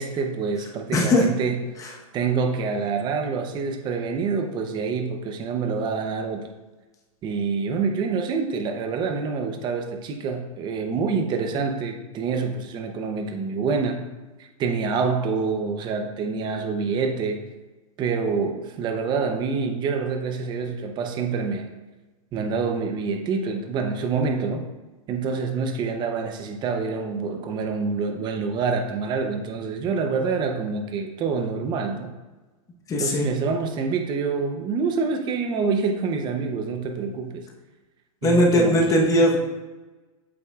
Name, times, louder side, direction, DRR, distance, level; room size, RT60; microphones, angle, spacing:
voice 1, 0.0-1.6 2.1-6.5 7.2-14.1 14.6-17.4 18.0-21.7 22.3-24.6 25.1-32.1 33.0-37.4 38.2-39.1, right 5 dB, 25° right, 5 dB, 0.8 m, -26 dB
voice 2, 0.9-1.3 32.9-33.3 38.2-39.4, left 1 dB, 20° left, 0 dB, 1.1 m, -19 dB
8.4 x 6.7 x 2.4 m, 1.2 s
hypercardioid pair, 145°, 19 cm